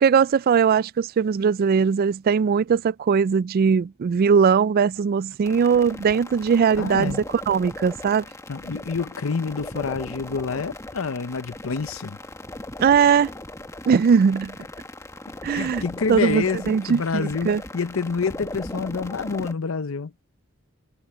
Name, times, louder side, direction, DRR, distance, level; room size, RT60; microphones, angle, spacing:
voice 1, 0.0-8.2 12.8-13.3 13.9-14.5 15.4-15.8 16.1-17.6, right 6 dB, 45° right, 0.3 m, -20 dB
sound 1, 5.4-19.5, left 1 dB, 15° left, 1.6 m, -38 dB
voice 2, 6.8-7.2 8.5-12.2 15.5-20.1, left 5 dB, 70° left, 0.7 m, -28 dB
head